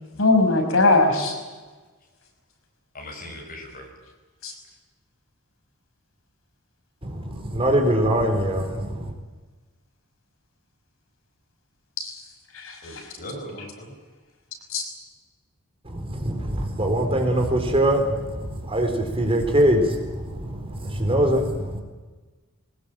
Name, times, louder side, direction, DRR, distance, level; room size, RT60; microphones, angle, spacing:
voice 1, 0.2-1.4 4.4-4.5 12.0-12.1 12.5-13.1 14.7-14.8, left 2 dB, 70° left, 3 dB, 5.7 m, -20 dB
voice 2, 2.9-3.9 12.8-14.0, left 1 dB, 45° left, 1 dB, 7.3 m, -39 dB
voice 3, 7.0-9.1 15.9-21.8, right 1 dB, 25° right, 4 dB, 3.9 m, -23 dB
22.5 x 19.5 x 9.0 m, 1.3 s
head